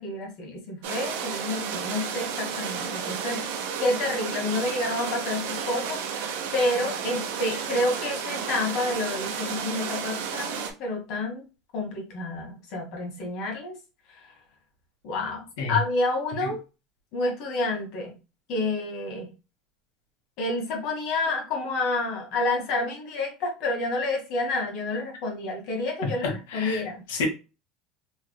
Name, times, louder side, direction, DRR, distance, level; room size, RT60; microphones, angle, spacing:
voice 1, 0.0-3.4 3.8-11.4 11.7-13.7 15.0-16.6 17.1-18.1 18.5-19.3 20.4-27.0, left 2 dB, 55° left, 1.4 m, -29 dB
sound 1, 0.8-10.7, right 7 dB, 90° right, 0.7 m, -32 dB
voice 2, 26.0-26.8 27.1-27.3, left 4 dB, 90° left, 1.2 m, -30 dB
3.3 x 3.3 x 2.2 m
cardioid pair, 150°, 0 cm